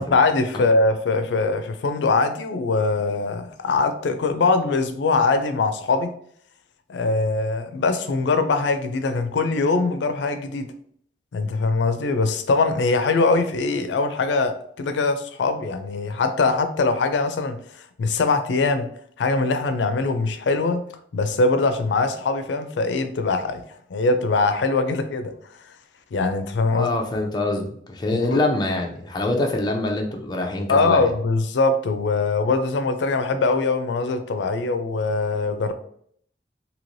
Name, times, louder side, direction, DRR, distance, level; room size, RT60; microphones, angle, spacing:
voice 1, 0.0-6.1 6.9-10.7 11.3-17.6 18.0-18.9 19.2-20.8 21.1-23.6 23.9-25.3 26.1-26.9 28.1-28.4 30.7-35.7, left 3 dB, 85° left, 9 dB, 0.4 m, -22 dB
voice 2, 26.7-31.1, left 2 dB, 25° left, 1 dB, 0.5 m, -25 dB
3.1 x 2.8 x 2.6 m, 0.64 s
head